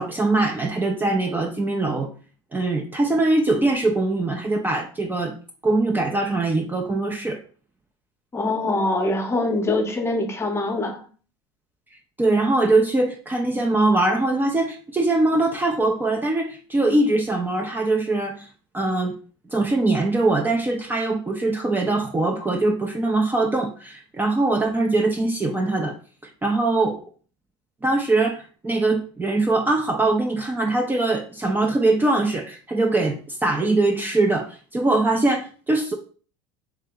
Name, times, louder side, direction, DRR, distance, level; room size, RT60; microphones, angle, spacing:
voice 1, 0.0-2.1 2.5-5.3 5.6-7.4 12.2-18.5 18.7-19.2 19.5-26.0 26.4-27.0 27.8-35.9, right 2 dB, 15° right, 2 dB, 0.5 m, -22 dB
voice 2, 8.3-11.1, left 2 dB, 20° left, 5 dB, 0.8 m, -24 dB
3.3 x 2.8 x 3.5 m, 0.40 s
hypercardioid pair, 85°, 14 cm